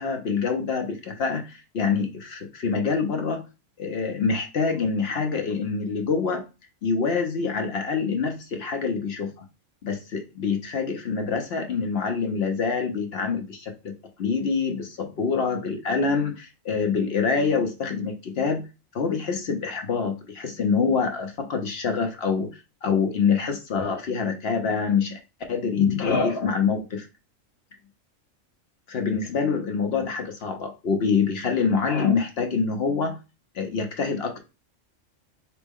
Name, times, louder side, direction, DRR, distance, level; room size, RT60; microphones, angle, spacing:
voice 1, 0.0-3.5 3.8-6.4 6.8-9.5 9.8-13.9 14.2-18.6 18.9-22.5 22.8-25.2 25.5-27.1 28.9-33.2 33.5-34.4, left 5 dB, 60° left, 5 dB, 0.8 m, -25 dB
4.1 x 3.0 x 3.5 m, 0.29 s
omnidirectional pair, 1.3 m